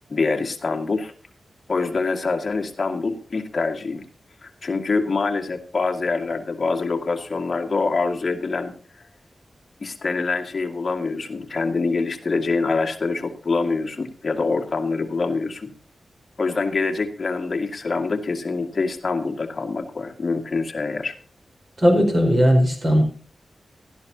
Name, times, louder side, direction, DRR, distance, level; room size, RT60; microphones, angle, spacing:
voice 1, 0.1-1.1 1.7-4.0 4.4-9.0 9.8-15.7 16.4-21.1, left 4 dB, 40° left, 3 dB, 2.0 m, -25 dB
voice 2, 21.8-23.0, equal, 35° right, 3 dB, 4.6 m, -17 dB
16.5 x 12.5 x 2.8 m, 0.41 s
wide cardioid pair, 170°, 0 cm